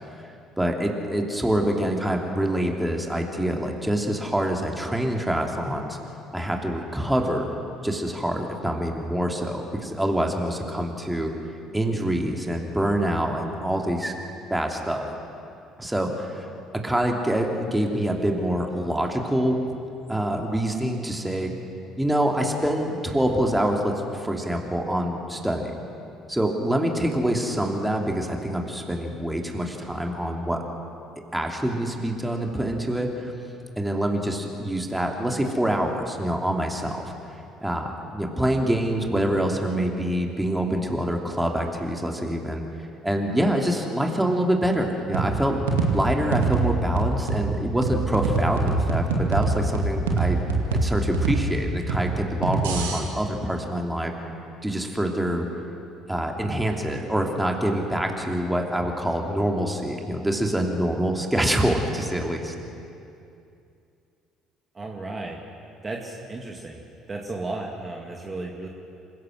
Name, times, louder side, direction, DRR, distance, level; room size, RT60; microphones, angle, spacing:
voice 1, 0.6-6.0 6.3-7.5 7.8-11.3 11.7-14.1 14.5-15.1 15.8-16.5 16.8-19.6 20.1-21.5 22.0-25.7 26.3-30.6 31.3-33.3 33.8-37.0 37.6-42.6 43.0-45.6 45.9-50.4 50.7-54.1 54.6-55.5 56.1-62.5, right 1 dB, 10° right, 2 dB, 2.9 m, -25 dB
sound 1, 45.1-53.0, right 3 dB, 80° right, 2.3 m, -25 dB
voice 2, 64.7-65.4 65.8-66.8 67.1-68.7, right 2 dB, 30° right, 0 dB, 2.3 m, -34 dB
27.0 x 16.0 x 6.3 m, 2.6 s
hypercardioid pair, 55°, 0 cm